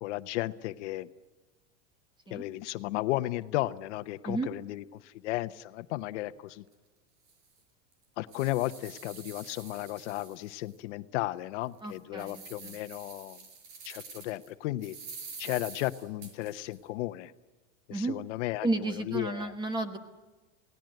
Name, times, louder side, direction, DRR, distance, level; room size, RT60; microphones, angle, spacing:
voice 1, 0.0-1.1 2.3-6.6 8.2-13.5 13.8-15.0 15.4-17.3 17.9-19.5, left 16 dB, 65° left, 12 dB, 1.0 m, -34 dB
sound 1, 6.7-6.8 7.3-7.4 7.9-10.7 11.2-11.3 11.8-14.5 14.8-16.8, right 5 dB, 70° right, 6.2 m, -47 dB
voice 2, 11.8-12.8 17.9-18.2 18.6-20.0, right 2 dB, 10° right, 9 dB, 1.3 m, -32 dB
27.5 x 18.0 x 7.8 m, 1.2 s
supercardioid pair, 170°, 37 cm